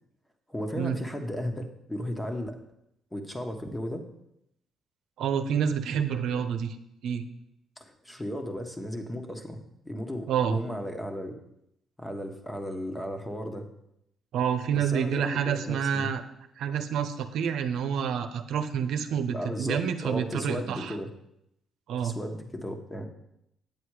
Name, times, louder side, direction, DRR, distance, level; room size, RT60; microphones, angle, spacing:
voice 1, 0.5-2.6 3.1-4.0 7.8-11.4 12.0-13.7 14.7-16.1 19.3-21.1 22.0-23.1, equal, 10° left, 5 dB, 1.5 m, -35 dB
voice 2, 5.2-6.7 7.0-7.2 10.3-10.6 14.3-16.2 16.6-20.9 21.9-22.1, right 8 dB, 80° right, 9 dB, 0.8 m, -28 dB
9.0 x 7.9 x 4.9 m, 0.80 s
cardioid pair, 90°, 0 cm